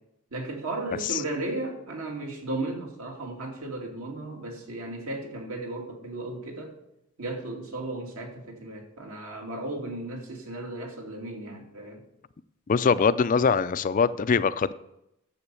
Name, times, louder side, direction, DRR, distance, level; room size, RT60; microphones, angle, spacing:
voice 1, 0.3-6.7 7.2-12.0, right 2 dB, 70° right, 2.6 m, -35 dB
voice 2, 12.7-14.7, left 5 dB, 35° left, 0.4 m, -22 dB
9.9 x 7.3 x 6.9 m
head